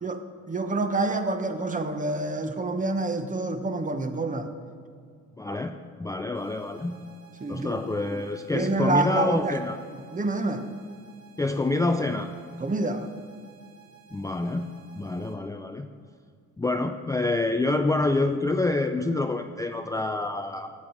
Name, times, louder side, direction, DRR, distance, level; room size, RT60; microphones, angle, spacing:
voice 1, 0.0-4.5 7.4-7.8 8.5-9.6 10.1-10.7 12.6-13.1, right 3 dB, 25° right, 7 dB, 1.0 m, -27 dB
voice 2, 5.4-6.9 7.5-9.8 11.4-12.3 14.1-14.7 14.9-15.9 16.6-20.7, left 2 dB, 10° left, 5 dB, 0.4 m, -27 dB
sound 1, 6.3-15.3, right 8 dB, 80° right, 2.2 m, -55 dB
13.5 x 8.6 x 3.9 m, 2.2 s
cardioid pair, 90°, 30 cm